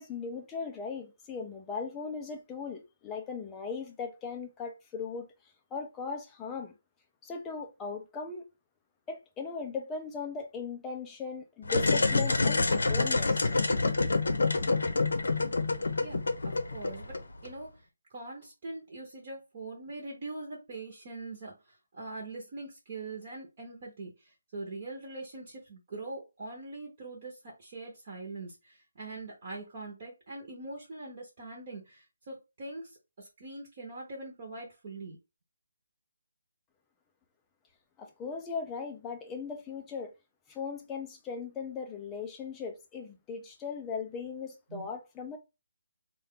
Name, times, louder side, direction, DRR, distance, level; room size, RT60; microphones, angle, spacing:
voice 1, 0.0-5.3 5.7-6.7 7.2-8.4 9.1-13.5 38.0-40.1 40.5-45.4, left 5 dB, 10° left, 0.4 m, -38 dB
sound 1, 11.6-17.5, left 3 dB, 75° left, 0.7 m, -27 dB
voice 2, 16.0-17.2 17.4-35.2 44.7-44.9, right 2 dB, 25° right, 0.7 m, -43 dB
4.3 x 2.2 x 3.6 m
hypercardioid pair, 180°, 0 cm